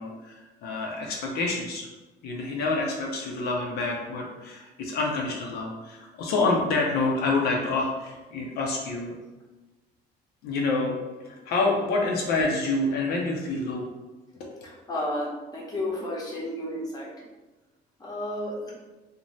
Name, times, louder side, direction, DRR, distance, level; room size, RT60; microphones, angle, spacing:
voice 1, 0.0-1.9 2.2-9.1 10.4-11.0 11.4-13.9 14.4-14.5, left 3 dB, 70° left, -1 dB, 0.5 m, -27 dB
voice 2, 14.9-15.3 15.5-17.1 18.0-18.7, left 1 dB, 25° left, -4 dB, 0.8 m, -31 dB
2.6 x 2.1 x 3.1 m, 1.1 s
cardioid pair, 110°, 17 cm